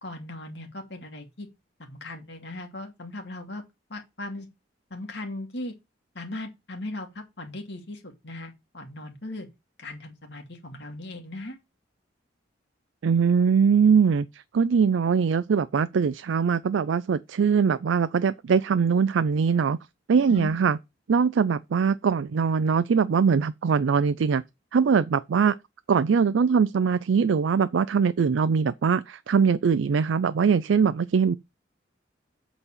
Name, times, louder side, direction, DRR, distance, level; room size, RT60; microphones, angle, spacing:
voice 1, 0.0-1.5 1.8-3.6 3.9-4.5 4.9-5.7 6.1-9.5 9.8-11.6 20.3-20.5, left 2 dB, 65° left, 2.3 m, -38 dB
voice 2, 13.0-19.8 20.1-20.8 21.1-24.4 24.7-25.6 25.9-31.3, right 6 dB, 85° right, 0.4 m, -22 dB
8.1 x 4.1 x 7.0 m
head